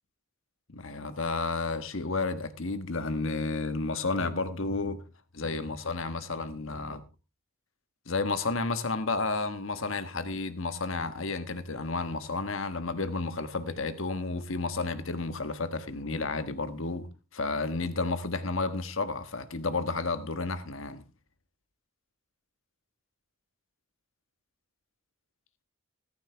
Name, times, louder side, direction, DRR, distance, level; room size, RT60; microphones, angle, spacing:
voice 1, 0.7-5.0 5.3-7.0 8.1-17.1 17.3-21.0, left 3 dB, 65° left, 1.4 m, -31 dB
14.5 x 14.0 x 3.4 m
head